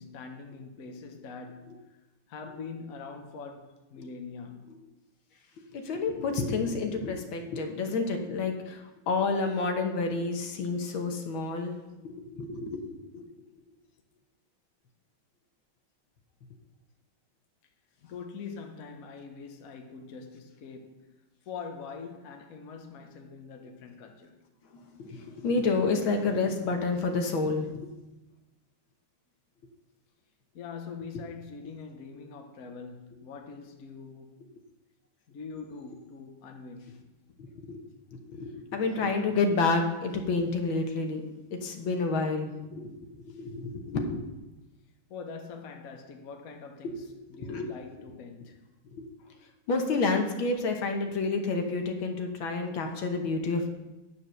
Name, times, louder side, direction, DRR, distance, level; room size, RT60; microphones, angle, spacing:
voice 1, 0.0-2.0 2.3-4.8 11.4-11.5 11.8-12.0 13.2-13.3 18.0-21.0 21.4-24.4 30.5-34.4 35.3-37.1 45.1-48.6, left 5 dB, 50° left, 1.2 m, -43 dB
voice 2, 5.7-11.8 12.0-12.8 13.1-13.2 24.7-27.7 37.7-37.8 38.3-41.2 41.5-43.1 43.4-44.2 47.3-47.7 49.0-49.1 49.7-53.7, left 3 dB, 70° left, 1.9 m, -29 dB
9.5 x 7.0 x 6.2 m
omnidirectional pair, 2.3 m